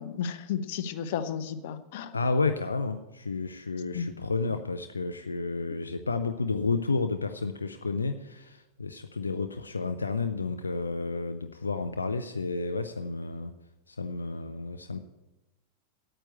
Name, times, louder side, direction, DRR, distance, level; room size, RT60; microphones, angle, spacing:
voice 1, 0.0-2.1 3.9-4.1, left 7 dB, 50° left, 11 dB, 0.9 m, -33 dB
voice 2, 2.1-13.5 13.9-15.0, left 3 dB, 75° left, 9 dB, 0.5 m, -31 dB
9.0 x 9.0 x 8.1 m, 1.0 s
figure-of-eight pair, 90°, 0 cm